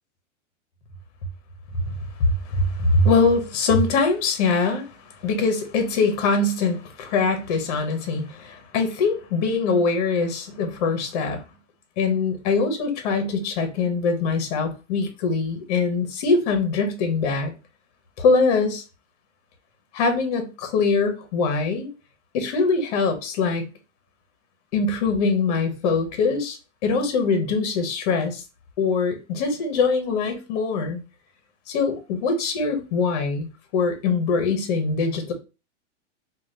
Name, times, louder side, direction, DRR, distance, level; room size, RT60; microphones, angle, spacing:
voice 1, 2.2-4.9 5.2-11.4 12.0-17.5 18.2-18.8 19.9-21.9 22.3-23.6 24.7-28.4 28.8-31.0 31.7-35.3, left 4 dB, 35° left, 0.6 m, -23 dB
2.6 x 2.2 x 3.1 m
supercardioid pair, 175°, 36 cm